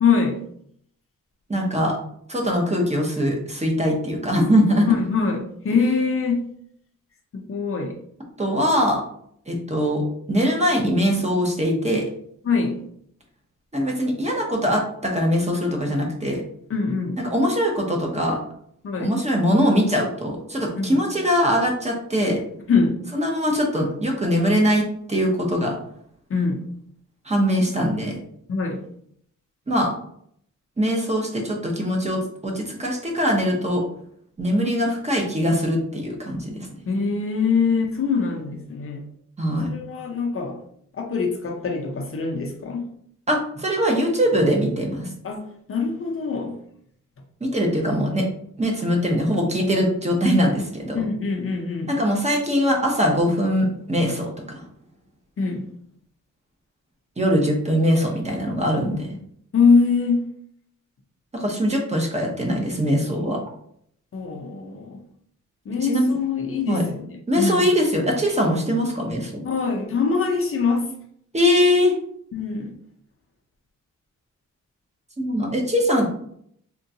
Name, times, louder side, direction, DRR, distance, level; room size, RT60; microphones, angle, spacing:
voice 1, 0.0-0.4 4.9-6.4 7.3-8.0 12.4-12.8 16.7-17.2 18.8-19.1 20.8-21.0 22.7-22.9 26.3-26.6 28.5-28.8 36.9-39.0 39.6-40.6 40.9-42.9 45.2-45.4 45.7-46.6 50.9-52.0 55.4-55.7 59.5-60.3 64.1-65.0 65.7-67.7 69.4-70.9 72.3-72.7, left 5 dB, 45° left, 1 dB, 0.6 m, -23 dB
voice 2, 1.5-2.0 2.3-4.9 8.4-9.0 9.5-12.0 13.7-16.4 17.2-18.4 19.0-22.4 23.1-25.8 27.3-28.2 29.7-29.9 30.8-33.8 34.4-36.7 39.4-39.7 43.3-45.1 47.4-48.2 48.6-51.0 51.9-54.6 57.2-59.2 61.3-63.4 65.8-66.1 66.7-66.9 67.3-69.4 71.3-72.0 75.2-76.1, equal, 20° right, 1 dB, 0.8 m, -22 dB
3.6 x 2.2 x 2.7 m, 0.66 s
cardioid pair, 100°, 31 cm